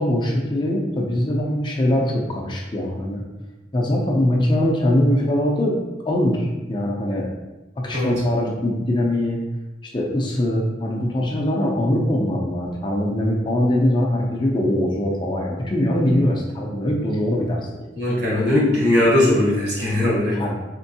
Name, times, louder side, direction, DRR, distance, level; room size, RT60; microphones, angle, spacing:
voice 1, 0.0-3.2 3.7-5.7 6.0-7.3 7.8-9.4 9.8-17.9 20.3-20.5, left 1 dB, 25° left, -1 dB, 0.5 m, -22 dB
voice 2, 18.0-20.4, left 1 dB, 70° right, -5 dB, 1.5 m, -19 dB
4.4 x 3.0 x 2.8 m, 1.1 s
head